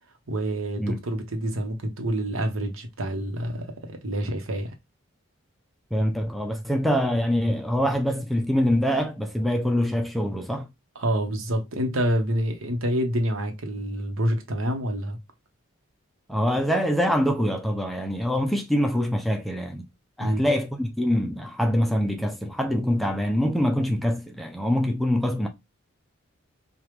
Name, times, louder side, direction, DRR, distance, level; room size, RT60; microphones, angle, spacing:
voice 1, 0.3-4.7 10.9-15.2 20.2-20.4, right 1 dB, 75° right, 1.0 m, -27 dB
voice 2, 5.9-10.7 16.3-19.8 20.2-25.5, equal, ahead, 0.4 m, -24 dB
5.0 x 2.4 x 3.1 m
head